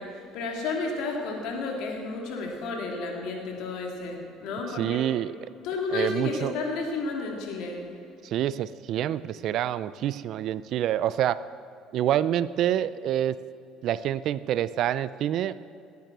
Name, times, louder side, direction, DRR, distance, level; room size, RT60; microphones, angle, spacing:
voice 1, 0.0-5.0 5.6-7.8, left 3 dB, 70° left, 0 dB, 3.0 m, -32 dB
voice 2, 4.8-5.3 5.9-6.5 8.2-11.4 11.9-13.4 13.8-15.5, right 11 dB, 60° right, 16 dB, 0.5 m, -27 dB
18.0 x 9.5 x 6.1 m, 2.6 s
supercardioid pair, 90°, 0 cm